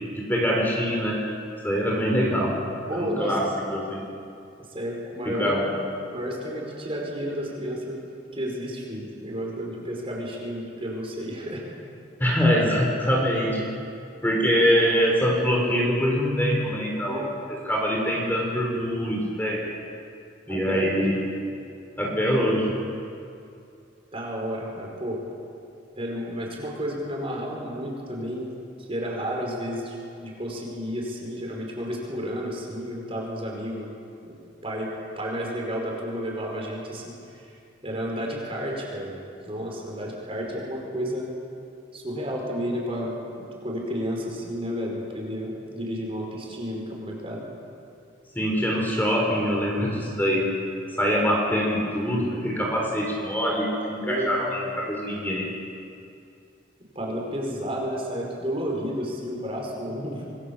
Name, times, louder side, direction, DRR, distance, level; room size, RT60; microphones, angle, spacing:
voice 1, 0.1-1.2 1.6-2.6 2.9-4.1 5.2-5.7 12.2-13.8 14.2-19.7 20.5-21.2 22.0-22.8 48.3-50.5 51.0-55.5, equal, 10° left, -2 dB, 4.0 m, -24 dB
voice 2, 2.9-3.4 4.7-5.7 6.1-8.0 8.3-11.6 17.1-17.3 20.5-21.0 24.1-25.2 25.9-28.5 28.9-33.9 34.3-34.4 34.6-34.9 35.2-37.5 37.8-41.3 41.9-47.5 54.0-54.4 57.0-60.2, equal, 30° right, -1 dB, 5.3 m, -31 dB
27.0 x 21.5 x 7.3 m, 2.5 s
head